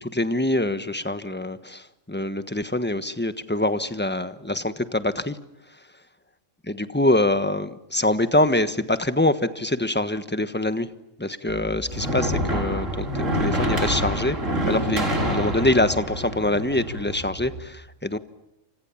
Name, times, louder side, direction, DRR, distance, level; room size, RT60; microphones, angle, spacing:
voice 1, 0.0-5.4 6.7-10.9 11.2-14.4 14.7-18.2, left 1 dB, 10° left, 11 dB, 1.2 m, -24 dB
sound 1, 11.5-17.6, equal, 70° right, 4.5 m, -27 dB
30.0 x 26.0 x 7.3 m, 0.87 s
omnidirectional pair, 1.4 m